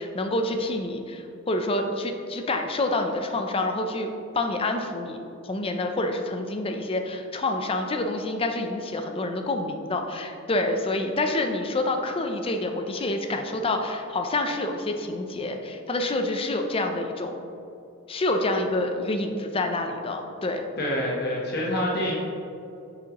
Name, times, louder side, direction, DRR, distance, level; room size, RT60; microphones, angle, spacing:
voice 1, 0.0-4.1 4.3-17.4 18.1-20.6, left 2 dB, 25° left, 5 dB, 0.5 m, -27 dB
voice 2, 20.8-22.2, left 1 dB, 50° left, -3 dB, 1.0 m, -26 dB
6.3 x 6.2 x 2.9 m, 2.7 s
head